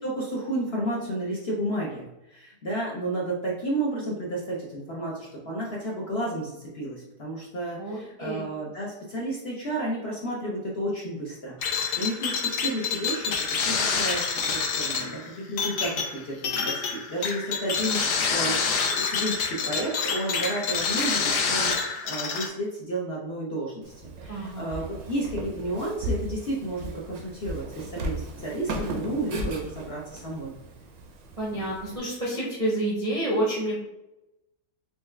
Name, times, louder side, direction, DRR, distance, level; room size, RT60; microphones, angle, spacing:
voice 1, 0.0-13.3 13.6-16.8 17.1-23.9 24.2-30.6, right 1 dB, 55° left, -4 dB, 0.7 m, -32 dB
voice 2, 7.8-8.5 24.3-24.7 31.4-33.8, right 1 dB, 40° right, -6 dB, 0.5 m, -29 dB
sound 1, 11.6-22.5, left 5 dB, 75° left, 1.2 m, -27 dB
Walk footsteps, 23.8-32.0, right 1 dB, 70° right, 1.0 m, -36 dB
4.7 x 2.2 x 3.2 m, 0.93 s
omnidirectional pair, 1.7 m